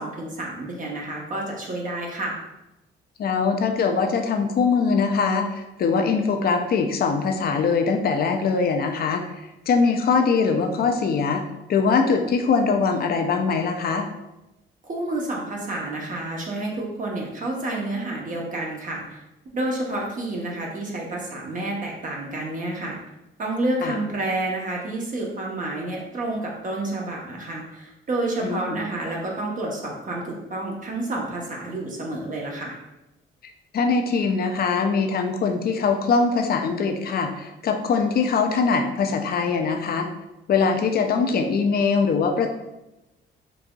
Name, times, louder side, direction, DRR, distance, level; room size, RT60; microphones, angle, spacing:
voice 1, 0.0-2.4 14.8-19.2 19.5-23.0 23.4-32.8, right 2 dB, 40° right, -2 dB, 0.8 m, -29 dB
voice 2, 3.2-9.2 9.7-11.4 11.7-14.1 23.8-24.0 28.4-28.8 33.7-40.1 40.5-42.5, left 5 dB, 50° left, 5 dB, 0.5 m, -22 dB
4.0 x 2.7 x 2.3 m, 0.95 s
cardioid pair, 90°, 20 cm